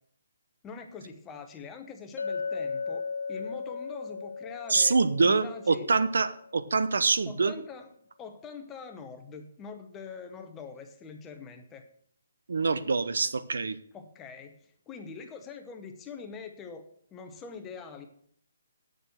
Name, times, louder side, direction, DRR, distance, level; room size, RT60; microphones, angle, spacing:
voice 1, 0.6-5.9 7.2-7.9 8.2-11.9 13.9-14.6 14.9-18.1, left 5 dB, 10° left, 5 dB, 0.8 m, -44 dB
Chink clink, 2.2-6.6, left 5 dB, 85° left, 0.6 m, -36 dB
voice 2, 4.7-7.5 12.5-13.8, right 4 dB, 75° right, 13 dB, 0.9 m, -25 dB
8.7 x 6.8 x 7.8 m, 0.62 s
hypercardioid pair, 175°, 0 cm